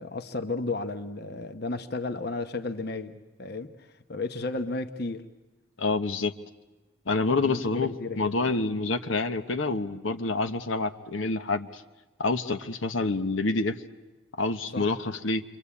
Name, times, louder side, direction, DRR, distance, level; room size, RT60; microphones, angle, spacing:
voice 1, 0.0-5.2 7.3-8.4 14.7-14.9, left 3 dB, 50° left, 9 dB, 1.0 m, -33 dB
voice 2, 5.8-6.3 7.1-11.8 12.2-13.8 14.4-15.4, left 3 dB, 80° left, 8 dB, 1.1 m, -27 dB
28.0 x 24.5 x 8.5 m, 1.1 s
head